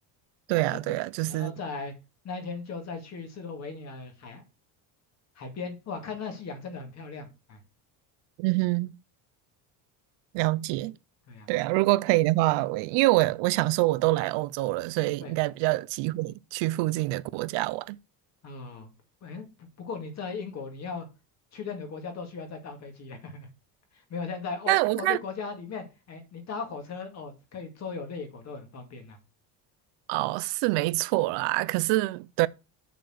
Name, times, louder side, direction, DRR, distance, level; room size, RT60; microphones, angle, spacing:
voice 1, 0.5-1.5 8.4-9.0 10.3-11.0 11.5-18.0 24.7-25.2 30.1-32.5, right 19 dB, 75° right, 0.6 m, -25 dB
voice 2, 1.3-1.9 2.2-4.4 5.4-7.6 11.3-11.5 15.2-15.3 18.4-18.9 19.2-19.5 19.8-21.1 21.5-23.5 23.9-29.2, left 4 dB, 35° left, 2.1 m, -38 dB
6.8 x 4.4 x 6.2 m
cardioid pair, 165°, 43 cm